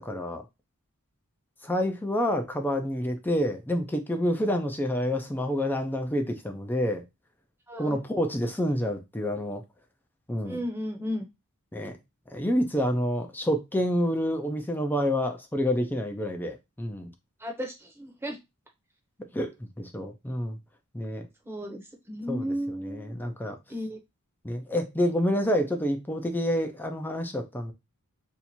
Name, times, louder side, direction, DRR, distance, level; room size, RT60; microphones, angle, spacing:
voice 1, 0.0-0.4 1.6-7.0 7.8-9.6 10.3-10.6 11.7-11.9 12.3-17.1 19.3-20.6 20.9-21.2 22.3-22.5 22.8-23.6 24.4-27.7, equal, 10° left, 0.5 m, -28 dB
voice 2, 7.7-8.0 10.4-11.3 17.4-18.4 21.4-21.8 22.1-23.1 23.7-24.0, equal, 10° right, 0.8 m, -34 dB
2.8 x 2.4 x 4.2 m
head